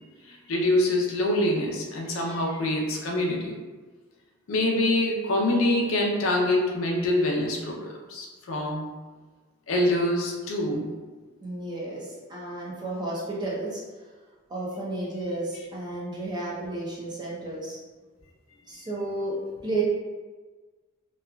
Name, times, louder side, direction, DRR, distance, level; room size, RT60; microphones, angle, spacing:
voice 1, 0.3-3.6 4.5-8.9 9.7-10.9, left 1 dB, 75° left, -1 dB, 0.5 m, -25 dB
voice 2, 11.4-13.8 14.5-17.8 18.7-19.8, right 2 dB, 20° right, -6 dB, 0.6 m, -32 dB
3.1 x 2.3 x 2.2 m, 1.3 s
head